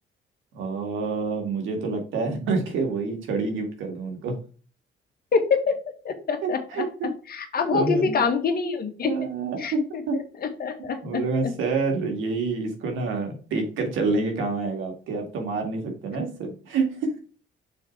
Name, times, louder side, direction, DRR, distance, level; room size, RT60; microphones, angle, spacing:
voice 1, 0.5-4.4 6.4-7.1 7.7-8.2 9.0-10.2 11.0-17.2, right 4 dB, 85° right, 3 dB, 2.2 m, -27 dB
voice 2, 5.3-5.8 6.0-6.9 7.3-9.1 9.6-11.5, left 5 dB, 50° left, 5 dB, 1.6 m, -26 dB
6.6 x 3.8 x 4.6 m, 0.38 s
cardioid pair, 90°, 20 cm